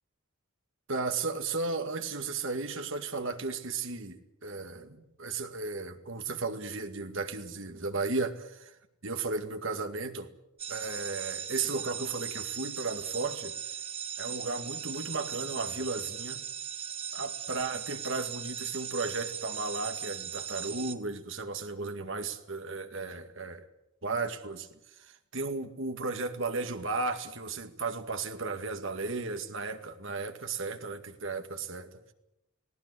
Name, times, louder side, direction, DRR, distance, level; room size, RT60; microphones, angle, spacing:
voice 1, 0.9-8.7 9.0-10.3 10.7-13.6 14.2-16.4 17.1-23.6 24.0-24.7 25.0-32.1, right 3 dB, 60° right, 2.1 m, -35 dB
sound 1, 10.6-21.0, right 8 dB, 25° right, 1.1 m, -38 dB
19.0 x 18.5 x 9.8 m
head